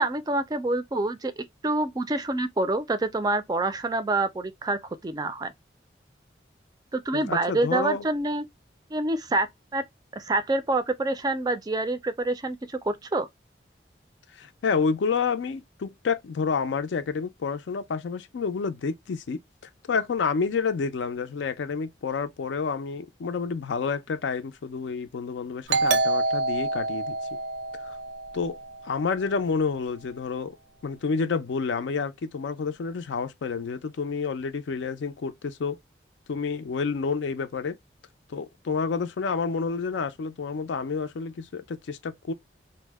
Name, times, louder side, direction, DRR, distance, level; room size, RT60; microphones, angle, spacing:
voice 1, 0.0-5.5 6.9-8.4 8.9-9.5 9.7-9.8 10.1-13.3, right 2 dB, 20° right, 0.3 m, -27 dB
voice 2, 7.1-8.0 14.3-19.4 19.9-27.1 27.8-28.0 28.3-28.6 28.8-30.6 30.8-35.8 36.3-37.8 38.3-42.3, left 5 dB, 85° left, 0.4 m, -29 dB
Doorbell, 25.7-29.0, right 3 dB, 85° right, 0.6 m, -27 dB
2.6 x 2.1 x 3.3 m
head